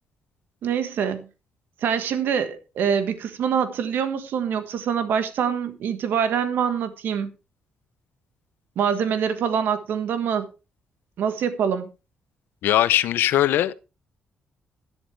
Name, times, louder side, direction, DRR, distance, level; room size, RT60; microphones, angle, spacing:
voice 1, 0.6-1.3 1.8-7.3 8.8-10.5 11.2-11.9, right 7 dB, 70° right, 1.6 m, -25 dB
voice 2, 12.6-13.7, left 13 dB, 85° left, 0.7 m, -20 dB
11.5 x 11.0 x 3.4 m
cardioid pair, 140°, 4 cm